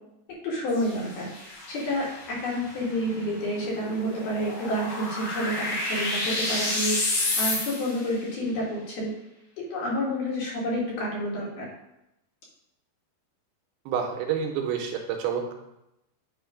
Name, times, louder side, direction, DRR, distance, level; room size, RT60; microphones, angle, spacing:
voice 1, 0.4-1.3 1.7-7.0 7.4-9.1 9.7-11.7, equal, 60° left, -4 dB, 3.0 m, -29 dB
sound 1, 0.7-8.1, left 2 dB, 85° left, 4.1 m, -31 dB
voice 2, 13.9-15.5, right 7 dB, 80° right, 3 dB, 2.8 m, -28 dB
9.1 x 3.2 x 4.9 m, 0.87 s
omnidirectional pair, 4.5 m